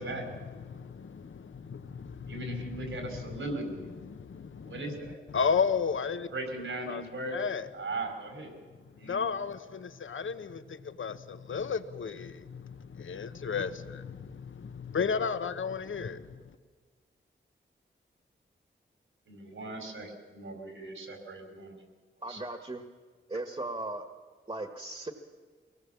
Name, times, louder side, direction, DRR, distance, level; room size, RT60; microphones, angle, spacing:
voice 1, 0.4-4.8 5.3-6.3 6.9-7.0 7.3-7.7 8.9-16.6, left 6 dB, 75° left, 11 dB, 1.0 m, -34 dB
voice 2, 2.3-3.9 4.6-5.2 6.3-7.4 7.7-8.6 9.0-9.3 19.3-21.8 22.3-22.4, right 2 dB, 80° right, 4 dB, 5.1 m, -38 dB
voice 3, 22.2-22.8 23.3-24.0 24.5-25.1, right 2 dB, 25° right, 7 dB, 1.5 m, -37 dB
24.0 x 19.5 x 7.4 m, 1.5 s
wide cardioid pair, 65°, 20 cm